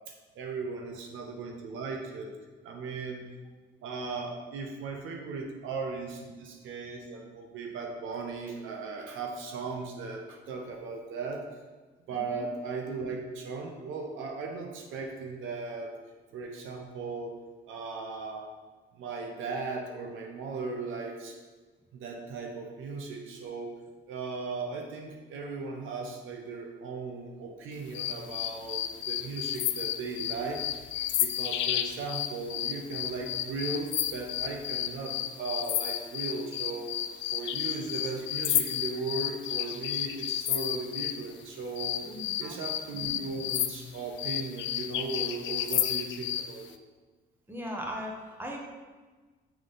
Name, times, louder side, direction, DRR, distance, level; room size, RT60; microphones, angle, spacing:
voice 1, 0.3-2.4 2.6-3.2 3.8-11.4 12.1-16.0 16.3-17.4 17.7-18.4 18.9-21.4 21.9-23.7 24.1-30.7 31.2-37.0 37.3-41.9 42.4-46.7, right 4 dB, 85° right, 2 dB, 0.8 m, -37 dB
voice 2, 12.1-12.5 42.0-42.6 47.5-48.6, equal, 10° right, -1 dB, 1.3 m, -38 dB
sound 1, 27.9-41.2 41.8-46.5, left 11 dB, 70° left, 0.4 m, -32 dB
7.1 x 3.7 x 3.9 m, 1.3 s
cardioid pair, 90°, 20 cm